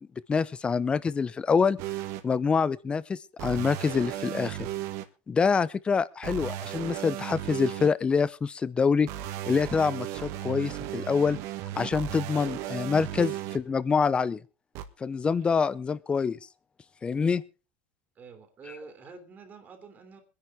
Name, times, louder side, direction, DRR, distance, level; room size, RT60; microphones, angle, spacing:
voice 1, 0.3-1.8 2.2-4.7 5.3-9.1 9.5-11.4 11.8-14.4 15.0-16.4 17.0-17.4, left 5 dB, 15° left, 19 dB, 0.7 m, -26 dB
sound 1, 1.8-2.2 3.4-5.0 6.2-7.9 9.1-13.6 14.7-14.8, right 13 dB, 50° right, 1.5 m, -35 dB
voice 2, 18.2-20.2, right 5 dB, 25° right, 7 dB, 2.8 m, -48 dB
23.0 x 10.5 x 3.5 m, 0.33 s
supercardioid pair, 150°, 7 cm